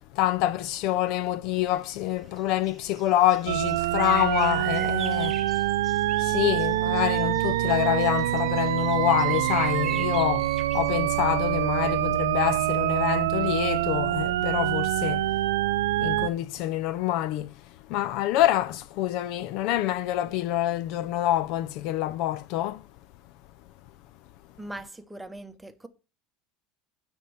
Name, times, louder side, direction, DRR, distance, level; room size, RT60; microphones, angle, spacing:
voice 1, 0.1-5.4 6.2-15.3 16.0-17.6 17.9-22.8, left 13 dB, 55° left, 0.4 m, -26 dB
sound 1, 1.6-11.1 11.4-11.7, right 8 dB, 25° right, 0.4 m, -41 dB
sound 2, 3.5-16.3, right 14 dB, 85° right, 0.6 m, -25 dB
voice 2, 24.6-25.9, right 1 dB, 5° right, 0.9 m, -40 dB
9.4 x 4.4 x 7.1 m
supercardioid pair, 145°, 0 cm